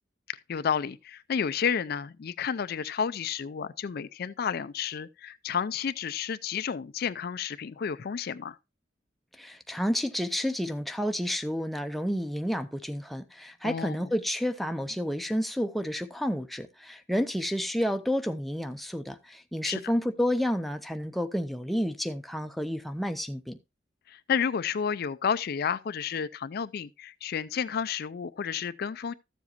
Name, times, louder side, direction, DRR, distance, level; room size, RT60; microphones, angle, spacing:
voice 1, 0.3-8.6 13.6-14.1 19.6-19.9 24.1-29.1, left 7 dB, 55° left, 0.4 m, -31 dB
voice 2, 9.4-23.6, equal, ahead, 0.6 m, -30 dB
13.5 x 7.2 x 2.9 m
head